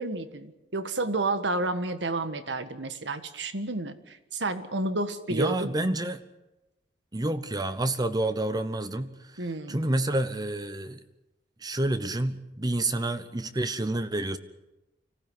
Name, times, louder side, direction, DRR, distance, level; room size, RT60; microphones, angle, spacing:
voice 1, 0.0-5.7 9.4-9.8, right 2 dB, 85° right, 11 dB, 1.7 m, -30 dB
voice 2, 5.3-6.2 7.1-11.0 11.6-14.4, right 1 dB, 20° right, 11 dB, 0.9 m, -29 dB
25.0 x 16.0 x 9.6 m, 0.97 s
head